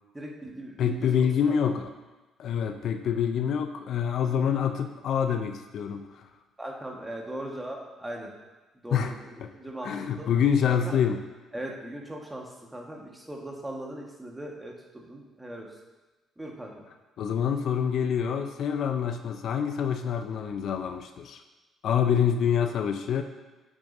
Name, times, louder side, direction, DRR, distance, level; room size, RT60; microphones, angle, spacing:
voice 1, 0.1-1.6 6.6-8.3 8.7-10.3 10.7-11.0 11.5-15.7 16.4-16.7, right 1 dB, 15° right, 0 dB, 1.4 m, -39 dB
voice 2, 0.8-1.9 2.4-6.2 8.9-9.1 9.4-9.5 9.8-11.2 17.2-21.4 21.8-23.2, left 8 dB, 65° left, 7 dB, 0.5 m, -26 dB
8.7 x 6.2 x 2.7 m, 1.2 s
supercardioid pair, 65°, 0 cm